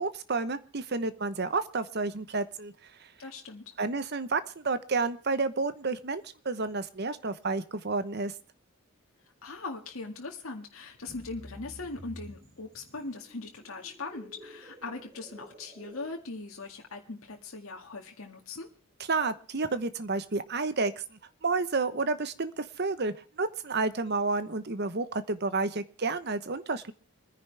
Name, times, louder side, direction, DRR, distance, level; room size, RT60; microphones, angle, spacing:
voice 1, 0.0-2.7 3.8-8.3 19.1-20.9 21.4-26.9, right 3 dB, 50° right, 12 dB, 1.0 m, -30 dB
voice 2, 3.2-3.6 9.4-18.7, left 3 dB, 80° left, 1 dB, 2.0 m, -40 dB
sound 1, 11.0-16.1, equal, 25° right, 2.7 m, -50 dB
26.0 x 10.0 x 3.4 m, 0.42 s
head